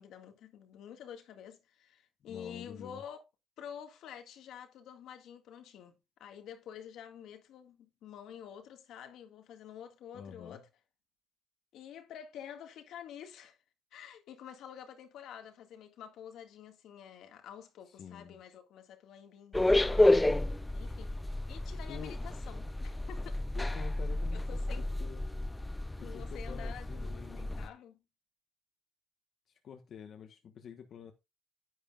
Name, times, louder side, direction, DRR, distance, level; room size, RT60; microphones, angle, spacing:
voice 1, 0.0-3.2 3.6-5.9 6.2-10.7 11.7-13.6 13.9-21.2 21.5-23.4 23.8-23.9 24.3-24.9 26.0-28.0, left 9 dB, 80° left, 1.9 m, -49 dB
voice 2, 2.3-3.0 10.1-10.6 17.9-18.4 21.9-22.2 23.5-25.2 26.0-27.7 29.5-31.1, left 7 dB, 65° left, 1.2 m, -48 dB
sound 1, 19.5-27.7, left 1 dB, 10° left, 0.5 m, -31 dB
10.5 x 9.7 x 2.4 m
cardioid pair, 90°, 0 cm